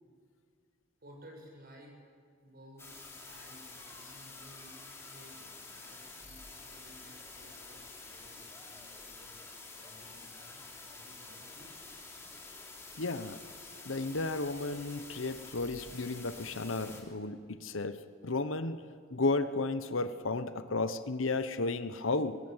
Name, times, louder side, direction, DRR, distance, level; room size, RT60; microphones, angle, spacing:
voice 1, 1.0-2.0 2.4-4.8 5.0-11.8, equal, 50° right, 0 dB, 7.0 m, -56 dB
sound 1, 2.8-17.0, left 3 dB, 15° left, 3.3 m, -49 dB
voice 2, 13.0-13.4 13.8-18.8 19.1-22.4, left 3 dB, 80° left, 11 dB, 1.1 m, -33 dB
23.5 x 21.0 x 8.1 m, 2.1 s
head